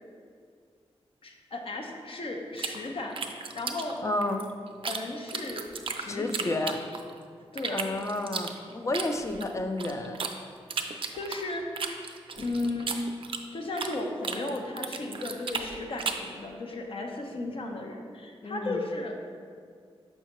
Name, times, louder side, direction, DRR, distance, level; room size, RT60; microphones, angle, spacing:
voice 1, 1.2-3.2 3.5-4.0 4.8-5.7 6.0-6.6 7.5-7.8 10.8-11.6 12.4-13.0 13.5-19.1, left 2 dB, 60° left, 2 dB, 0.7 m, -35 dB
sound 1, 2.6-5.0 5.3-7.2 7.6-10.3 10.7-14.0 14.2-16.3, right 5 dB, 60° right, 0.4 m, -34 dB
voice 2, 4.0-4.5 6.1-6.8 7.7-10.2 18.4-18.8, left 2 dB, 30° left, 6 dB, 0.4 m, -31 dB
6.4 x 5.5 x 3.0 m, 2.1 s
wide cardioid pair, 125°, 10 cm